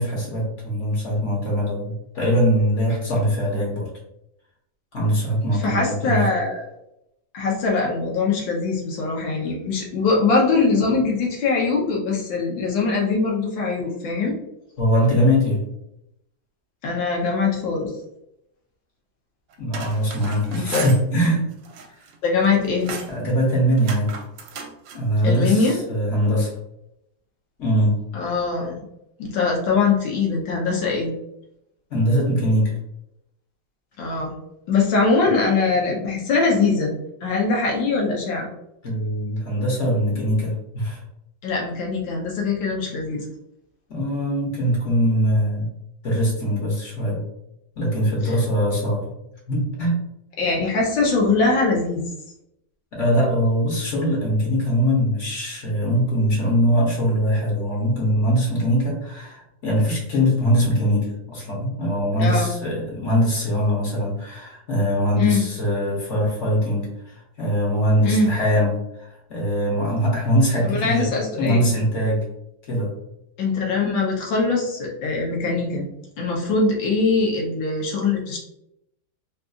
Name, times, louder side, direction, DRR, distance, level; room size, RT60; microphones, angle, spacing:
voice 1, 0.0-3.9 4.9-6.3 14.8-15.6 19.6-21.4 23.1-24.1 24.9-26.5 27.6-28.0 31.9-32.7 38.8-41.0 43.9-45.7 46.0-47.2 47.8-49.2 49.5-50.0 52.9-72.3 72.7-72.9, equal, 50° left, -3 dB, 1.1 m, -22 dB
voice 2, 5.6-6.6 7.3-14.3 16.8-17.9 20.6-20.9 22.2-22.9 25.2-25.8 28.1-28.8 29.2-31.1 34.0-34.3 34.7-36.9 37.2-38.5 41.4-43.2 48.2-48.3 50.4-52.1 62.2-62.5 65.2-65.4 68.0-68.3 70.6-71.7 73.4-75.9 76.2-78.4, left 4 dB, 80° left, -2 dB, 1.6 m, -22 dB
sound 1, 19.5-21.0 21.5-22.2 22.4-23.2 23.8-25.0, right 4 dB, 80° right, 1.3 m, -35 dB
3.9 x 2.5 x 2.4 m, 0.82 s
omnidirectional pair, 2.0 m